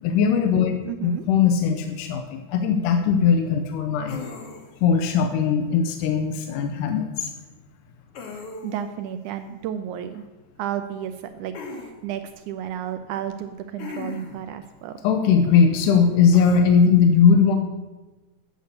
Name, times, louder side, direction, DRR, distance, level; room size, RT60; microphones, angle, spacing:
voice 1, 0.0-0.8 1.0-4.2 4.8-7.3 15.0-17.6, left 6 dB, 85° left, 6 dB, 2.2 m, -19 dB
voice 2, 0.8-1.3 8.6-10.2 10.6-15.0, right 10 dB, 80° right, 9 dB, 1.8 m, -32 dB
sound 1, 4.1-4.9 8.1-8.9 11.5-11.9 13.8-14.5 16.3-16.6, left 4 dB, 60° left, 1.8 m, -37 dB
9.0 x 6.8 x 6.6 m, 1.2 s
omnidirectional pair, 3.8 m